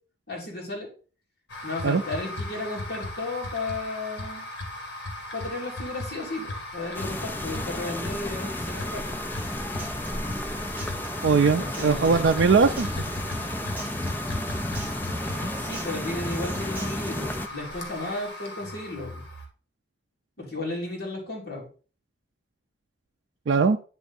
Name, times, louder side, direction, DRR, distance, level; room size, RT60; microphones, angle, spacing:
voice 1, 0.3-0.9 1.6-4.4 5.3-9.2 11.5-12.4 15.5-19.2 20.4-21.7, left 2 dB, 55° left, -4 dB, 3.1 m, -34 dB
sound 1, 1.5-19.5, left 1 dB, 80° left, 1.7 m, -36 dB
sound 2, 6.9-17.5, left 1 dB, 10° left, 0.4 m, -33 dB
Human voice / Acoustic guitar, 9.3-17.3, right 1 dB, 10° right, 1.0 m, -44 dB
voice 2, 11.2-12.9 23.5-23.8, right 5 dB, 65° right, 4 dB, 0.4 m, -20 dB
9.9 x 3.5 x 4.1 m, 0.37 s
head